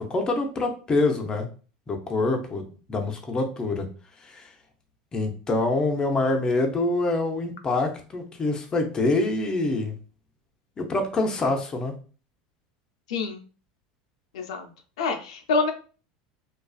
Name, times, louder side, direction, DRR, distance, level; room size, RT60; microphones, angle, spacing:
voice 1, 0.1-1.5 1.9-3.9 4.2-4.5 5.1-9.9 10.8-11.9, left 2 dB, 25° left, 4 dB, 0.6 m, -25 dB
voice 2, 13.1-13.4 14.3-14.7 15.0-15.7, left 4 dB, 85° left, 5 dB, 0.5 m, -26 dB
2.4 x 2.3 x 2.3 m, 0.37 s
supercardioid pair, 115°, 3 cm